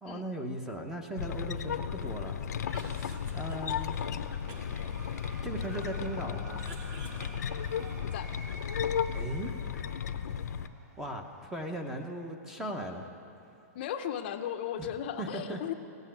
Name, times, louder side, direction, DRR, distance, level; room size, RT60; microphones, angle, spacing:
voice 1, 0.0-2.4 2.9-4.0 5.4-6.7 9.1-9.5 11.0-13.1 14.8-14.9 15.2-15.6, right 1 dB, 5° right, 4 dB, 0.7 m, -38 dB
sound 1, 1.2-10.7, left 8 dB, 85° left, 0.7 m, -34 dB
sound 2, 2.2-12.1, right 1 dB, 80° right, 2.6 m, -52 dB
Cough, 2.5-4.1 4.5-6.0 6.3-8.2, right 2 dB, 25° right, 1.2 m, -51 dB
voice 2, 13.7-15.7, left 9 dB, 40° left, 7 dB, 0.6 m, -36 dB
16.0 x 8.1 x 9.9 m, 2.7 s
hypercardioid pair, 170°, 9 cm